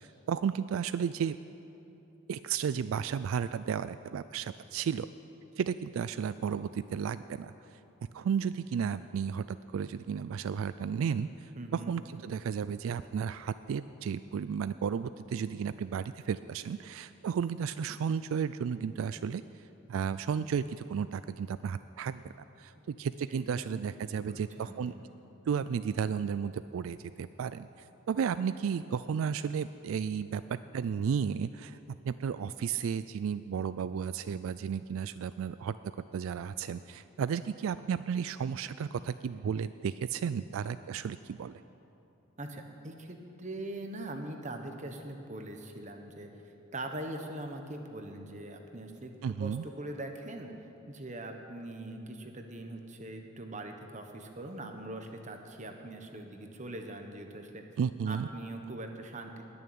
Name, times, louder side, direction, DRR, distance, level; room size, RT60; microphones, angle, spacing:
voice 1, 0.3-1.4 2.3-5.1 5.6-7.5 8.1-19.4 19.9-22.3 22.6-24.9 25.5-31.8 32.0-35.8 36.1-41.6 49.2-49.6 57.8-58.3, right 7 dB, 80° right, 14 dB, 0.3 m, -33 dB
voice 2, 11.6-11.9 23.3-23.5 24.1-25.0 42.4-49.1 49.4-50.5 50.9-57.6 58.1-59.5, right 1 dB, 35° right, 4 dB, 1.2 m, -42 dB
19.5 x 6.9 x 8.6 m, 2.9 s
head